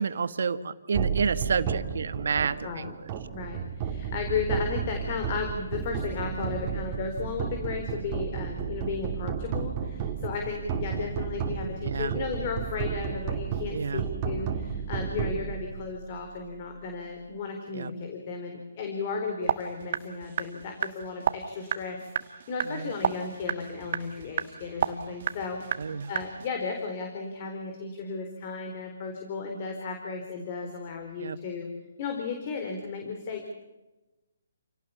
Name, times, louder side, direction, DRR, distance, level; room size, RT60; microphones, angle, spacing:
voice 1, 0.0-2.9 11.8-12.1 13.7-14.0 17.7-17.9 22.6-22.9 25.8-26.1 31.2-31.4, right 5 dB, 70° right, 12 dB, 1.7 m, -29 dB
sound 1, 0.9-16.2, right 7 dB, 25° right, 2.9 m, -33 dB
voice 2, 3.3-25.8 26.1-31.7 32.0-33.4, left 4 dB, 35° left, 4 dB, 4.2 m, -34 dB
sound 2, 19.4-26.5, right 8 dB, 50° right, 1.5 m, -33 dB
29.0 x 18.0 x 7.2 m, 1.1 s
hypercardioid pair, 155°, 0 cm